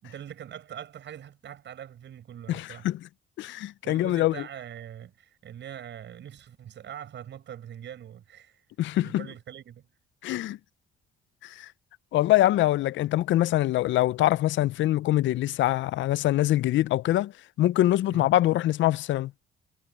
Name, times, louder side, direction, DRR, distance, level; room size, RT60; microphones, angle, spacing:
voice 1, 0.0-2.9 3.6-8.6 8.9-9.8 18.1-18.3, right 10 dB, 65° right, 6.5 m, -43 dB
voice 2, 2.5-3.0 3.4-4.3 8.8-9.3 10.2-10.6 11.4-11.7 12.1-17.3 17.6-19.3, left 14 dB, 70° left, 0.5 m, -24 dB
cardioid pair, 90°, 20 cm